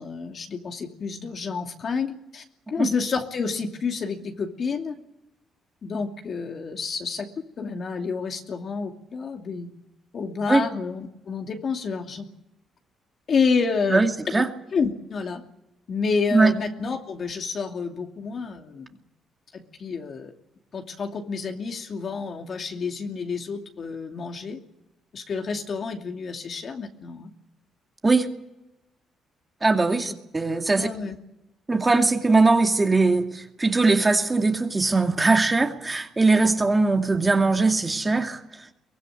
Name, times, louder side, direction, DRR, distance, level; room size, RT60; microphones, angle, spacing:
voice 1, 0.0-4.9 5.8-7.3 7.6-9.7 10.1-12.3 13.3-14.4 14.7-15.4 15.9-19.0 19.5-20.3 20.7-24.6 25.1-27.3 30.0-30.2 30.8-31.2, left 5 dB, 50° left, 3 dB, 2.6 m, -29 dB
voice 2, 13.9-14.5 16.3-16.5 28.0-28.3 29.6-30.9 31.7-38.4, right 3 dB, 20° right, 4 dB, 2.4 m, -20 dB
23.5 x 16.5 x 9.5 m, 0.91 s
cardioid pair, 90°, 0 cm